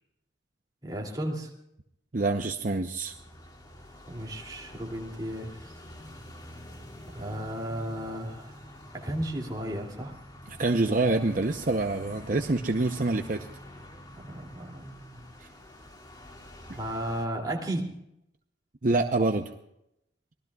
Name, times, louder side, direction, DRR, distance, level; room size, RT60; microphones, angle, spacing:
voice 1, 0.8-1.5 4.1-5.8 7.1-8.6 8.9-10.2 14.2-15.2 16.8-18.0, right 1 dB, 20° right, -1 dB, 2.8 m, -34 dB
voice 2, 2.1-3.1 10.5-13.5 18.8-19.5, right 2 dB, 45° right, 5 dB, 0.8 m, -26 dB
sound 1, 3.0-17.3, left 1 dB, 25° left, 2.2 m, -47 dB
25.5 x 19.5 x 2.4 m, 0.81 s
head